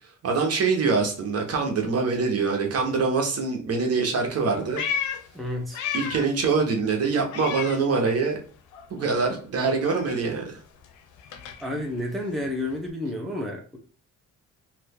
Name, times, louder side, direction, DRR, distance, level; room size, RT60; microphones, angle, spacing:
voice 1, 0.2-4.8 5.9-8.4 8.9-10.6, right 4 dB, 55° right, 2 dB, 1.1 m, -24 dB
Meow, 4.3-6.4 6.7-8.5 8.7-12.9, left 8 dB, 85° left, 0.6 m, -35 dB
voice 2, 5.3-5.8 7.1-7.2 11.6-13.8, left 1 dB, ahead, 0 dB, 0.7 m, -30 dB
2.8 x 2.5 x 3.6 m, 0.42 s
cardioid pair, 90°, 30 cm